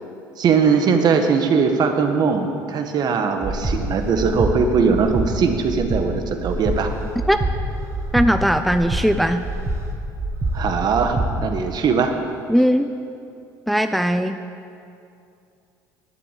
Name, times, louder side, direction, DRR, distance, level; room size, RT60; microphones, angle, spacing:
voice 1, 0.4-6.9 10.5-12.2, right 5 dB, 55° right, 5 dB, 1.5 m, -20 dB
Breathing, 3.4-3.8 4.2-4.5 4.9-5.3 5.7-6.0 6.4-6.8 7.2-7.5 7.9-8.3 8.7-9.0 9.4-9.8 10.2-10.5 10.9-11.3, right 2 dB, 30° right, 1.7 m, -25 dB
voice 2, 8.1-9.4 12.5-12.9 13.7-14.4, equal, ahead, 8 dB, 0.6 m, -18 dB
11.5 x 7.7 x 8.5 m, 2.5 s
supercardioid pair, 80°, 9 cm